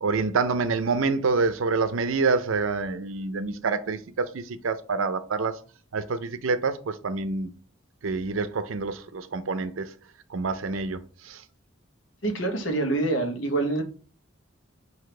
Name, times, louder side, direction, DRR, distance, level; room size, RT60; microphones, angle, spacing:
voice 1, 0.0-5.6 5.9-7.5 8.0-9.9 10.3-11.4, right 4 dB, 85° right, 0.5 m, -27 dB
voice 2, 12.2-13.8, right 2 dB, 70° left, 1.1 m, -26 dB
5.8 x 2.8 x 3.3 m
head